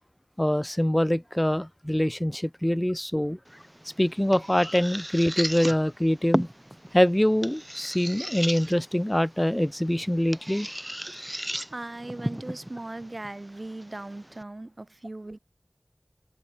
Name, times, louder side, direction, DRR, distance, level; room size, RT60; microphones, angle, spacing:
voice 1, 0.4-3.4 3.8-6.5 6.9-10.7, equal, 15° left, 0.4 m, -24 dB
sound 1, 3.5-14.4, right 1 dB, 15° right, 3.4 m, -36 dB
voice 2, 11.7-15.4, right 2 dB, 55° right, 2.0 m, -38 dB
open air
wide cardioid pair, 45°, 0 cm